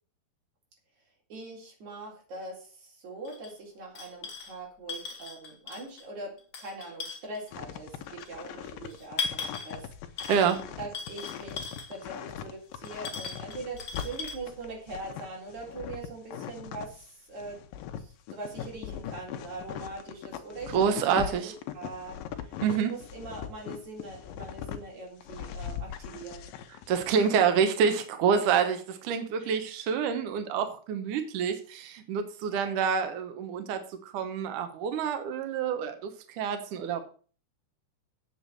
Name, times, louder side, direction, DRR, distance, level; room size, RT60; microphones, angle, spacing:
voice 1, 1.3-9.9 10.8-17.6 18.0-26.5 29.4-29.6 32.5-32.8, right 2 dB, 40° right, -2 dB, 4.9 m, -42 dB
sound 1, 3.2-3.5 3.9-4.6 4.9-6.0 6.4-7.5 8.2-8.3 8.9-9.8 10.2-10.6 10.9-12.0 12.8-14.3, left 5 dB, 50° left, 1.8 m, -38 dB
sound 2, 7.5-17.0 17.4-24.8 25.2-27.5, left 9 dB, 85° left, 1.9 m, -40 dB
voice 2, 10.3-10.6 20.7-21.5 22.6-22.9 26.9-37.1, right 7 dB, 80° right, 7 dB, 1.8 m, -27 dB
8.2 x 7.1 x 7.7 m, 0.41 s
omnidirectional pair, 5.3 m